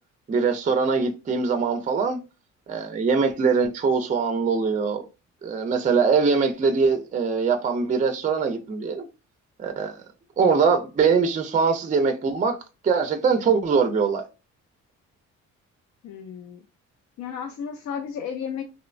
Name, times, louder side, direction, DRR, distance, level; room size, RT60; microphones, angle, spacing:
voice 1, 0.3-2.2 2.7-5.0 5.4-9.1 9.6-10.0 10.4-12.6 12.8-14.2, right 5 dB, 25° right, 0.4 m, -22 dB
voice 2, 16.0-16.6 17.2-18.6, left 7 dB, 65° left, 0.4 m, -33 dB
2.9 x 2.0 x 2.4 m
cardioid pair, 90°, 30 cm